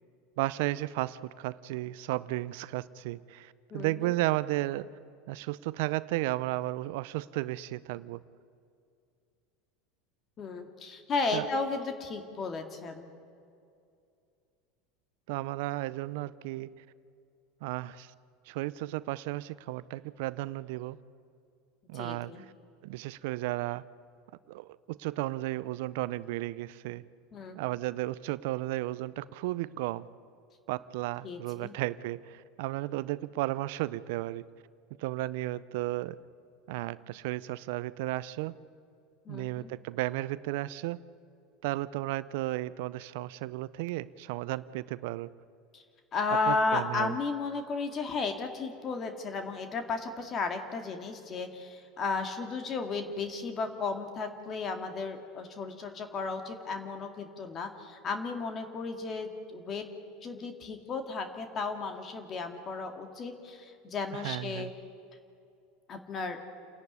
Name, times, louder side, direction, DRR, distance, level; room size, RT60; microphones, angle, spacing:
voice 1, 0.4-4.9 5.3-8.2 11.3-11.5 15.3-16.7 17.6-18.1 18.5-21.0 21.9-22.5 22.8-23.8 24.5-27.0 27.5-30.1 30.7-34.5 35.0-36.2 36.7-38.6 39.3-41.0 41.6-45.3 46.5-47.1 64.1-64.7, right 17 dB, 70° right, 18 dB, 0.5 m, -34 dB
voice 2, 3.7-4.1 10.4-13.1 21.9-22.4 27.3-27.6 31.2-31.7 39.3-39.7 45.7-45.8 46.1-59.9 60.2-64.7 65.9-66.4, left 4 dB, 40° left, 6 dB, 2.1 m, -34 dB
28.5 x 11.0 x 9.5 m, 2.4 s
hypercardioid pair, 90°, 0 cm